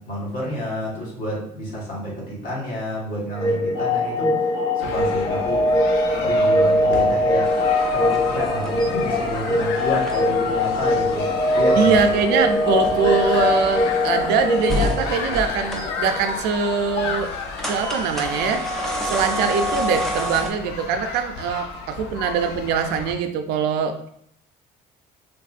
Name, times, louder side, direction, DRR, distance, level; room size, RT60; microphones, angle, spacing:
voice 1, 0.0-4.4 4.7-5.7 6.0-7.5 7.9-11.9 21.9-22.0, equal, 55° left, -4 dB, 1.4 m, -29 dB
sound 1, 3.4-16.1, left 1 dB, 25° left, 0.9 m, -21 dB
sound 2, 4.8-23.1, left 5 dB, 85° left, 0.5 m, -33 dB
sound 3, 7.4-20.5, equal, ahead, 0.4 m, -31 dB
voice 2, 11.8-17.3 17.6-18.7 19.0-24.0, right 6 dB, 80° right, 8 dB, 0.4 m, -23 dB
3.4 x 2.5 x 2.4 m, 0.69 s
cardioid pair, 140°, 17 cm